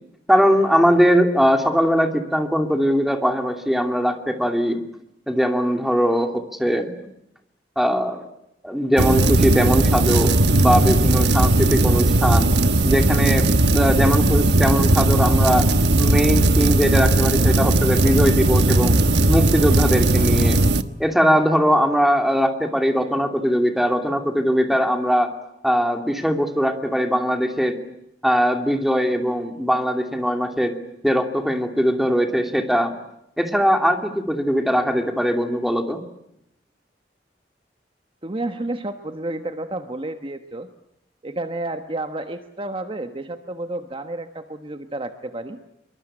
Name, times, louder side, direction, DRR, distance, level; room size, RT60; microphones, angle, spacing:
voice 1, 0.3-4.8 5.3-6.9 7.8-8.2 8.6-10.3 10.6-12.5 12.8-13.5 13.7-15.6 16.0-19.0 19.3-20.6 21.0-25.3 25.6-27.8 28.2-30.7 31.0-32.9 33.4-36.0, equal, ahead, 5 dB, 2.7 m, -20 dB
sound 1, 9.0-20.8, right 2 dB, 75° right, 1.3 m, -17 dB
voice 2, 38.2-40.7 41.2-45.6, right 2 dB, 30° right, 7 dB, 1.3 m, -31 dB
26.0 x 23.5 x 8.8 m, 0.80 s
head